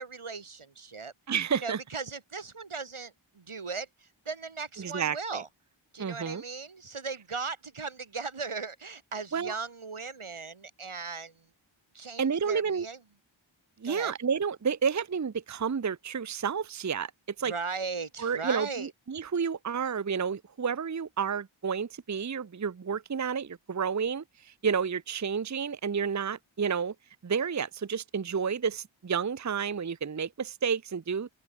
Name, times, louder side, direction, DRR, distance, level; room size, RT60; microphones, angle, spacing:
voice 1, 0.0-1.1 1.5-5.5 5.9-11.5 11.9-13.0 13.8-14.1 17.4-18.9, right 4 dB, 85° right, 1.9 m, -38 dB
voice 2, 1.3-1.8 4.8-5.4 6.0-6.4 9.3-9.6 12.2-12.9 13.8-17.1 17.4-17.5 18.2-26.9 27.2-31.3, right 6 dB, 35° right, 0.6 m, -30 dB
open air
wide cardioid pair, 40°, 48 cm